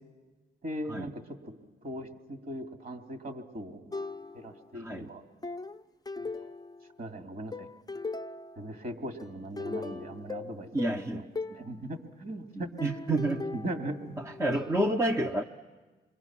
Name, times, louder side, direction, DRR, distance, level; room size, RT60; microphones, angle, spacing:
voice 1, 0.6-3.9 4.3-5.2 6.2-6.3 7.0-7.7 8.6-10.7 11.1-12.7 13.2-14.2 14.5-14.6, right 1 dB, 50° right, 6 dB, 2.5 m, -39 dB
sound 1, 3.9-4.7 5.4-7.1 7.5-8.7 9.2-11.7 12.8-14.6, left 3 dB, 20° left, 0.8 m, -39 dB
voice 2, 4.7-5.1 10.7-11.3 12.5-13.5 14.2-15.4, right 1 dB, 15° right, 5 dB, 0.8 m, -29 dB
28.0 x 23.5 x 6.1 m, 1.3 s
cardioid pair, 75°, 19 cm